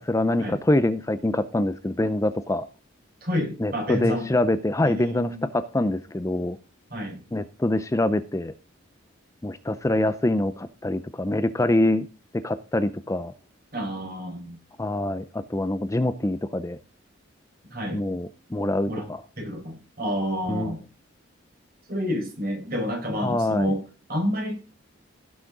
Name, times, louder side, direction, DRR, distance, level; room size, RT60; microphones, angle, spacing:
voice 1, 0.0-2.7 3.6-6.6 7.3-8.5 9.4-12.1 12.3-13.3 14.8-16.8 17.9-19.2 20.5-20.8 23.2-23.7, left 1 dB, 15° left, 0.5 m, -25 dB
voice 2, 3.2-4.3 4.8-5.5 6.9-7.2 13.7-14.6 17.7-18.0 18.9-19.1 19.4-20.8 21.9-23.8 24.1-24.6, equal, 45° right, 4.6 m, -29 dB
16.5 x 6.3 x 3.8 m
head